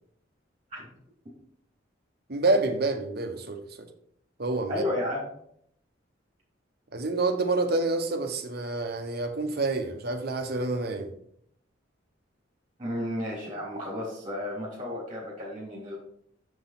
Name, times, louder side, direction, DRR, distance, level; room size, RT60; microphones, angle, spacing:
voice 1, 2.3-3.9 4.4-4.8 6.9-11.1, right 2 dB, 55° right, 5 dB, 1.1 m, -28 dB
voice 2, 4.7-5.3 12.8-16.0, left 1 dB, 25° right, -5 dB, 3.2 m, -33 dB
7.0 x 6.2 x 4.2 m, 0.69 s
head